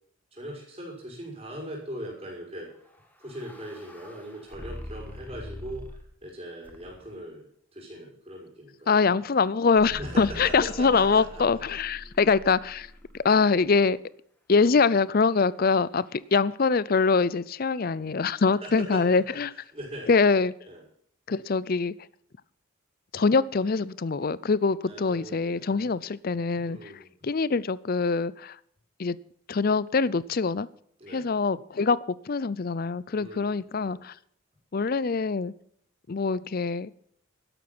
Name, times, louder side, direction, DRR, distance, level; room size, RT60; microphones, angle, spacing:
voice 1, 0.3-2.9 3.2-7.5 7.7-9.1 10.0-11.6 18.5-19.4 19.7-20.1 20.7-20.8 24.9-25.8 26.6-27.1 31.0-31.3 33.1-34.0, equal, 25° right, 5.5 m, -40 dB
sound 1, 2.9-6.2 6.6-7.2 9.8-13.9, equal, 10° left, 1.9 m, -43 dB
voice 2, 8.9-12.9 13.2-14.0 14.5-19.5 20.1-20.5 21.3-21.9 23.1-26.9 27.2-28.6 29.0-29.2 29.5-30.7 31.1-34.2 34.7-35.5 36.1-36.9, left 4 dB, 45° left, 0.5 m, -24 dB
13.0 x 11.5 x 6.1 m
head